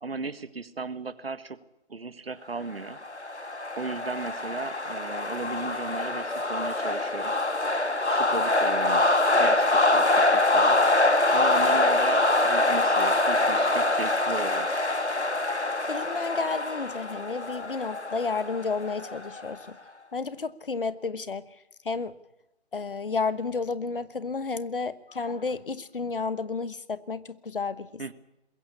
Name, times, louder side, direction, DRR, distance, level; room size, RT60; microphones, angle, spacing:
voice 1, 0.0-1.6 1.9-3.0 3.7-7.3 8.1-9.0 9.3-10.8 11.3-14.7 28.0-28.1, right 4 dB, 60° right, 15 dB, 1.6 m, -36 dB
sound 1, 2.8-19.5, left 2 dB, 90° left, 1.9 m, -24 dB
voice 2, 15.9-19.8 20.1-21.4 21.8-22.1 22.7-27.9, left 4 dB, 55° left, 16 dB, 1.2 m, -31 dB
21.5 x 16.5 x 8.5 m, 0.91 s
figure-of-eight pair, 150°, 33 cm